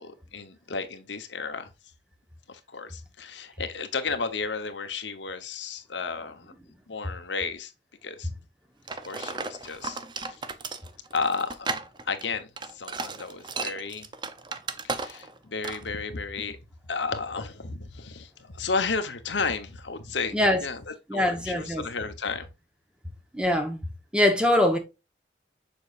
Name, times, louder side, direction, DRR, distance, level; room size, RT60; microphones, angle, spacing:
voice 1, 0.0-1.7 2.5-6.5 6.9-7.7 8.0-8.3 9.0-10.4 11.1-14.1 14.8-16.6 16.9-22.5, left 4 dB, 90° left, 1.1 m, -33 dB
sound 1, 8.9-15.4 15.6-15.9, right 4 dB, 25° right, 0.6 m, -35 dB
voice 2, 21.1-21.8 23.3-23.8 24.1-24.8, left 1 dB, 5° right, 1.1 m, -22 dB
7.1 x 5.4 x 2.5 m
head